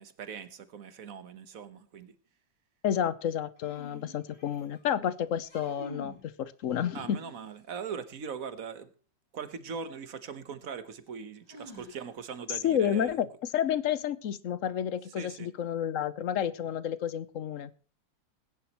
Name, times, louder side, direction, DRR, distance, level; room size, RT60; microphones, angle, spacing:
voice 1, 0.0-2.1 6.9-8.9 9.3-13.1 15.2-15.5, right 6 dB, 55° right, 13 dB, 1.4 m, -40 dB
voice 2, 2.8-7.2 12.6-13.3 13.5-17.7, left 9 dB, 60° left, 17 dB, 0.9 m, -30 dB
sound 1, 3.6-4.8 5.3-6.2 6.7-7.6 9.6-9.7 11.5-12.3, left 1 dB, 90° left, 4.9 m, -48 dB
20.5 x 10.5 x 3.0 m, 0.36 s
omnidirectional pair, 1.9 m